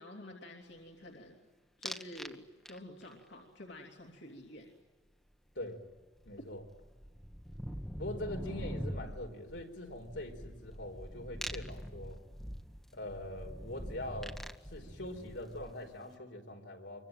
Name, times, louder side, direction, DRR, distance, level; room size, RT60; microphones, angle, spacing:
voice 1, 0.0-1.4 1.8-4.7 6.4-6.5, left 1 dB, 70° left, 0 dB, 3.0 m, -49 dB
sound 1, 1.8-2.3 2.7-3.1 5.6-5.7 5.9-16.0, equal, ahead, 1.2 m, -44 dB
voice 2, 6.2-6.6 8.0-12.2 12.9-14.4 14.7-17.1, left 1 dB, 90° left, 3 dB, 4.5 m, -43 dB
26.0 x 23.5 x 9.1 m, 1.3 s
head